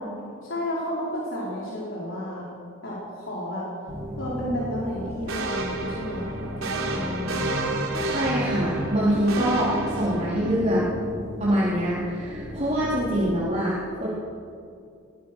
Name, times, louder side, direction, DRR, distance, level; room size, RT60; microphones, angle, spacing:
voice 1, 0.4-2.5 2.8-3.7 4.2-7.5, left 1 dB, 65° left, -6 dB, 5.1 m, -32 dB
sound 1, 3.9-13.3, equal, 15° right, 3.1 m, -34 dB
sound 2, 5.3-10.6, right 2 dB, 80° right, 3.6 m, -31 dB
voice 2, 8.0-10.8 11.4-14.1, equal, 35° right, -8 dB, 3.9 m, -24 dB
22.0 x 20.0 x 6.5 m, 2.4 s
head